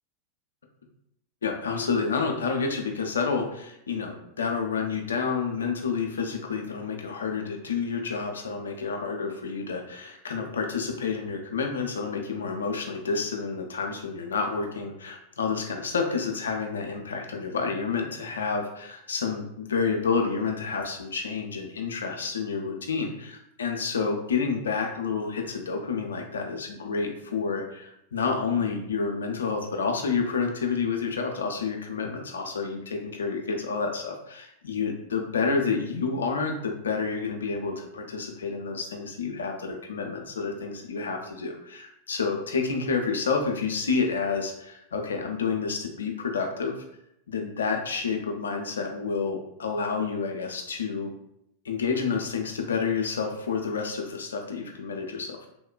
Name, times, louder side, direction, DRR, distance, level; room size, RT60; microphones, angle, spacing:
voice 1, 1.4-46.8 47.3-51.1 51.6-55.5, left 5 dB, 70° left, 3 dB, 0.4 m, -29 dB
3.1 x 2.1 x 2.2 m, 0.79 s
figure-of-eight pair, 90°, 0 cm